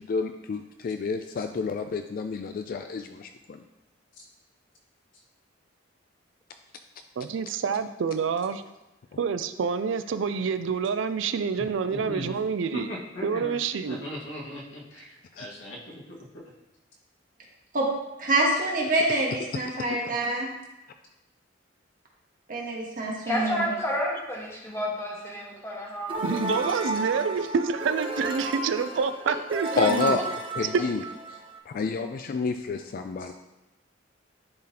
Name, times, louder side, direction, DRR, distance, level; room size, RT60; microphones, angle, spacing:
voice 1, 0.1-3.6 15.4-15.5 23.3-23.4 29.8-30.2 30.6-31.0 31.7-33.3, left 5 dB, 50° left, 7 dB, 0.3 m, -29 dB
voice 2, 7.2-8.6 9.2-12.9 13.2-14.0 26.2-30.2 30.7-30.8, right 5 dB, 80° right, 11 dB, 0.4 m, -27 dB
voice 3, 11.9-12.4 12.7-13.5 13.8-16.4, left 1 dB, 80° left, -4 dB, 1.7 m, -39 dB
voice 4, 18.2-20.5 22.5-23.7, right 2 dB, 45° right, -2 dB, 1.4 m, -26 dB
voice 5, 23.3-26.2, equal, 15° left, -4 dB, 1.5 m, -30 dB
sound 1, 26.1-31.6, right 2 dB, 30° right, 0.6 m, -33 dB
10.5 x 3.9 x 2.9 m, 0.96 s
head